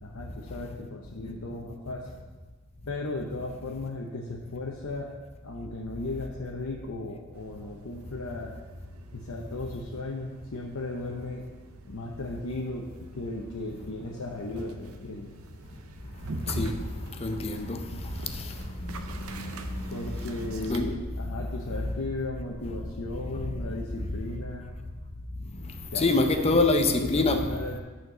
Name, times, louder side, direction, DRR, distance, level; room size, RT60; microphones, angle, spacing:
voice 1, 0.0-2.1 2.9-5.1 5.4-8.5 9.1-11.4 11.9-15.3 19.9-24.7 25.9-27.8, left 2 dB, 85° left, 0.8 m, -36 dB
sound 1, 7.3-20.8, right 2 dB, 80° right, 0.7 m, -43 dB
voice 2, 17.2-17.8 19.2-20.0 20.7-20.9 25.9-27.4, left 2 dB, 30° left, 0.5 m, -25 dB
9.4 x 4.4 x 6.0 m
head